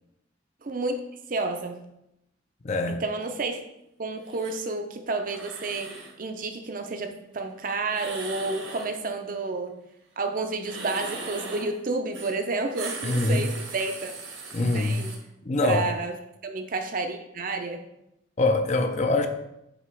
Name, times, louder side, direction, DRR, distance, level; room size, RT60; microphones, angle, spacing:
voice 1, 0.6-1.0 1.3-1.8 2.9-3.6 4.0-9.8 10.2-14.1 14.7-15.2 15.6-16.2 16.4-17.8, right 3 dB, 45° right, 5 dB, 0.6 m, -30 dB
voice 2, 2.6-3.0 13.0-13.4 14.5-15.0 15.5-15.8 18.4-19.3, left 2 dB, 35° left, 6 dB, 0.5 m, -23 dB
sound 1, 4.2-4.6 5.2-6.1 7.9-8.9 10.6-11.7 12.1-12.3 12.6-15.1, right 3 dB, 80° right, 1.5 m, -39 dB
7.9 x 2.9 x 4.4 m, 0.85 s
head